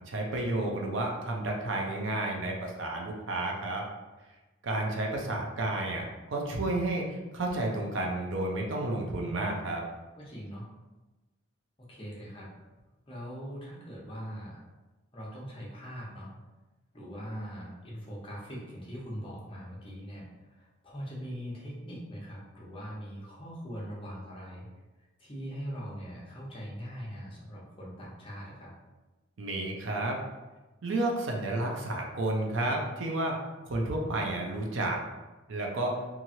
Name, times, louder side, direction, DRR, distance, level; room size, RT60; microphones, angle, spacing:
voice 1, 0.1-3.8 4.6-9.8 29.4-30.2 30.8-33.4 33.6-35.0 35.5-36.0, right 2 dB, 70° right, 0 dB, 0.5 m, -31 dB
voice 2, 10.2-10.7 11.8-12.6 13.1-14.6 15.1-16.3 16.9-24.7 25.2-28.7, equal, 25° left, -5 dB, 0.7 m, -41 dB
2.9 x 2.4 x 2.7 m, 1.1 s
head